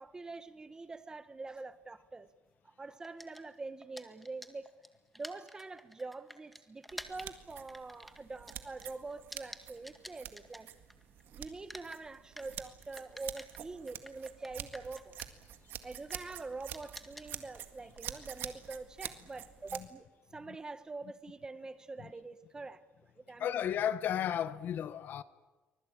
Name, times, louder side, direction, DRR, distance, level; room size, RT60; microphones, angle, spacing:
voice 1, 0.0-2.3 2.6-4.7 5.1-10.7 11.3-15.2 15.8-20.1 20.3-23.6, right 3 dB, 20° right, 1.2 m, -45 dB
sound 1, 3.0-11.2 11.5-19.7, equal, ahead, 1.9 m, -52 dB
sound 2, 6.9-19.9, right 11 dB, 70° right, 1.9 m, -47 dB
voice 2, 23.4-25.2, left 9 dB, 60° left, 1.0 m, -33 dB
24.5 x 20.5 x 8.7 m
cardioid pair, 120°, 4 cm